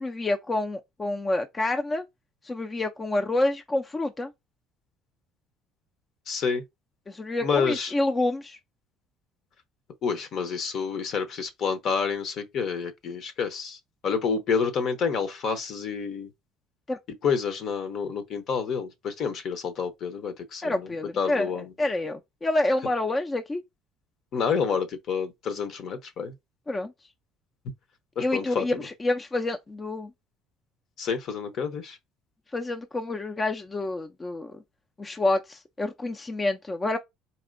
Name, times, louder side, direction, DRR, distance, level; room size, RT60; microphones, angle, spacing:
voice 1, 0.0-2.0 2.4-4.3 7.1-8.6 16.9-17.0 20.6-23.6 26.7-26.9 28.2-30.1 32.5-34.6 35.0-37.0, left 2 dB, 20° left, 0.4 m, -28 dB
voice 2, 6.3-6.6 7.4-7.9 10.0-16.3 17.2-21.7 24.3-26.3 28.2-28.7 31.0-32.0, left 6 dB, 55° left, 0.8 m, -29 dB
4.2 x 2.8 x 2.5 m
supercardioid pair, 100°, 0 cm